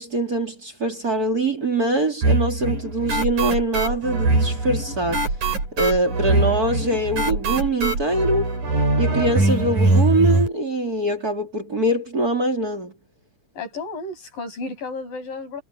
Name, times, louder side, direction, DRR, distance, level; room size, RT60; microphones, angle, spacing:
voice 1, 0.0-5.3 5.7-8.6 9.0-12.9, right 1 dB, 25° right, 3.5 m, -23 dB
sound 1, 2.2-10.5, right 2 dB, 65° right, 9.4 m, -22 dB
voice 2, 13.6-15.6, left 3 dB, 80° left, 8.2 m, -32 dB
omnidirectional pair, 3.8 m